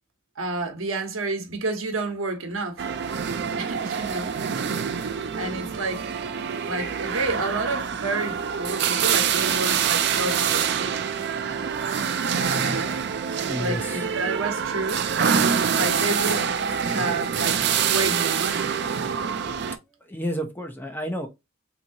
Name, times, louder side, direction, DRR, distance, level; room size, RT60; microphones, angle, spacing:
voice 1, 0.4-2.8 3.6-4.4 5.3-6.1 6.6-11.0 12.6-13.0 13.6-15.1 15.7-16.6 16.8-18.7, right 2 dB, 80° right, 1.0 m, -30 dB
sound 1, 2.8-19.8, right 7 dB, 55° right, 0.4 m, -25 dB
voice 2, 13.4-14.0 19.8-21.3, equal, 10° left, 0.6 m, -31 dB
3.5 x 2.8 x 2.8 m
head